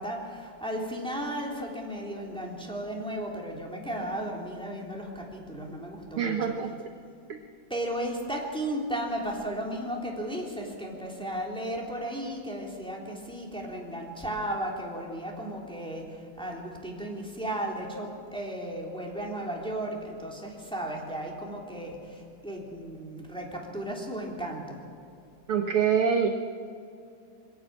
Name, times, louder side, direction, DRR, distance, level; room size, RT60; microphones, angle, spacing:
voice 1, 0.0-6.5 7.7-24.8, right 1 dB, ahead, -2 dB, 3.1 m, -35 dB
voice 2, 6.2-6.9 7.3-7.4 25.5-26.4, right 7 dB, 70° right, 5 dB, 1.3 m, -25 dB
22.5 x 17.0 x 7.6 m, 2.5 s
omnidirectional pair, 3.7 m